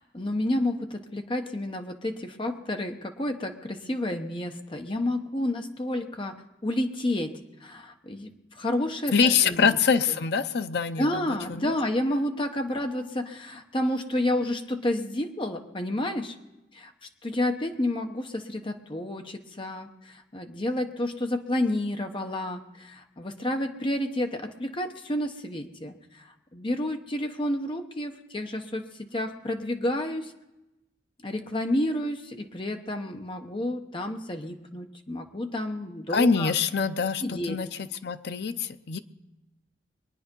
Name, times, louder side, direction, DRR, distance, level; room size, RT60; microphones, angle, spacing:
voice 1, 0.0-8.3 8.5-9.7 10.1-10.2 11.0-16.3 16.7-16.9 17.2-30.3 31.2-36.5 37.2-37.6, left 1 dB, 30° left, 5 dB, 1.0 m, -30 dB
voice 2, 9.1-11.2 11.5-11.7 36.1-39.0, left 5 dB, 65° left, 10 dB, 0.6 m, -25 dB
22.5 x 9.4 x 5.3 m, 0.98 s
head